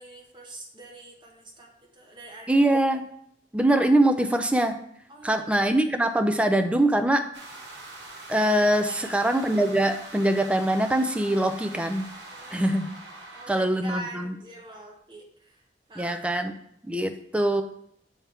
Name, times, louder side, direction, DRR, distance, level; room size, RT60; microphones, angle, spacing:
voice 1, 0.0-2.6 5.1-5.7 8.9-9.2 12.3-12.7 13.3-15.6 15.9-16.2, right 2 dB, 25° right, 0 dB, 1.1 m, -44 dB
voice 2, 2.5-3.0 3.5-4.8 5.2-7.3 8.3-12.1 12.5-12.9 13.5-14.3 16.0-16.5 16.9-17.6, right 1 dB, 5° right, 7 dB, 0.4 m, -23 dB
sound 1, 7.3-13.5, right 2 dB, 90° right, 1.3 m, -43 dB
7.1 x 3.5 x 4.3 m, 0.71 s
head